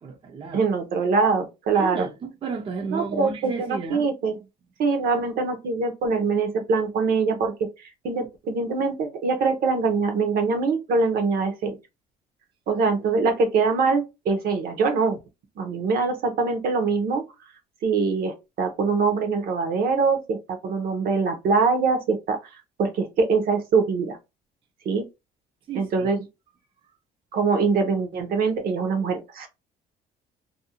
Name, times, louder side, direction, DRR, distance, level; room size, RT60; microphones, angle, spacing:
voice 1, 0.0-0.6 1.7-4.1 25.7-26.1, right 4 dB, 30° right, 0.4 m, -33 dB
voice 2, 0.5-2.1 2.9-4.3 4.8-7.7 8.0-11.8 12.7-15.2 15.6-17.3 17.8-22.4 22.8-24.2 24.8-25.1 25.7-26.2 27.3-29.5, right 4 dB, 60° right, 0.7 m, -23 dB
2.5 x 2.0 x 2.8 m
cardioid pair, 110°, 17 cm